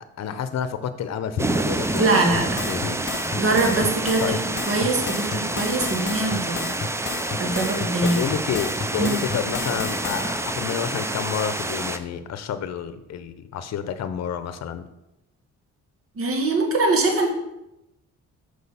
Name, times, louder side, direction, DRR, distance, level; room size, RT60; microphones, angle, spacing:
voice 1, 0.2-2.1 2.7-3.0 4.2-4.4 8.0-14.8, left 8 dB, 60° left, 11 dB, 0.8 m, -29 dB
sound 1, 1.4-12.0, right 2 dB, 10° right, 0.5 m, -28 dB
voice 2, 2.0-2.6 3.4-6.6 7.4-8.2 9.0-9.3 16.2-17.3, right 2 dB, 50° right, 2 dB, 1.8 m, -23 dB
sound 2, 2.3-10.3, left 5 dB, 40° left, 1.4 m, -32 dB
6.4 x 5.0 x 5.5 m, 0.89 s
cardioid pair, 90°, 30 cm